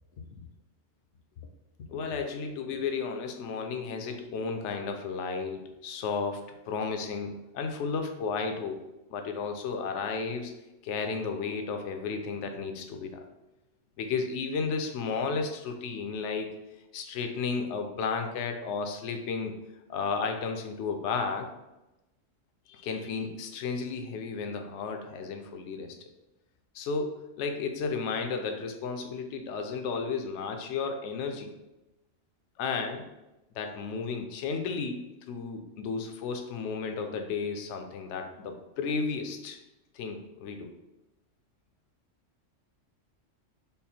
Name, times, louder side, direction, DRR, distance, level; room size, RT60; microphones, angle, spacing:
voice 1, 1.8-6.4 6.7-8.8 9.1-10.5 10.8-13.2 14.0-16.5 16.9-19.5 19.9-21.5 22.7-26.1 26.7-31.5 32.6-33.1 33.6-39.6 39.9-40.7, left 5 dB, 70° left, 5 dB, 0.9 m, -33 dB
5.4 x 2.1 x 4.2 m, 0.97 s
omnidirectional pair, 1.3 m